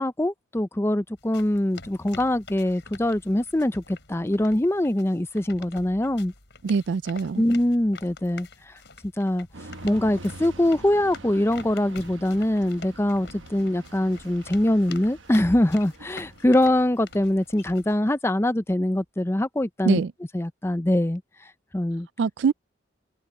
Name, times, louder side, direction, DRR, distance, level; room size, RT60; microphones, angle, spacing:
voice 1, 0.0-6.3 7.4-8.8 9.2-9.5 9.8-20.0 20.3-21.2 21.7-22.1, left 1 dB, 15° left, 0.6 m, -23 dB
sound 1, 1.2-17.9, left 4 dB, 65° left, 5.4 m, -47 dB
voice 2, 6.6-7.4 19.8-20.1 22.2-22.5, right 5 dB, 70° right, 0.4 m, -23 dB
sound 2, 9.5-17.5, right 2 dB, 90° right, 1.2 m, -45 dB
open air
head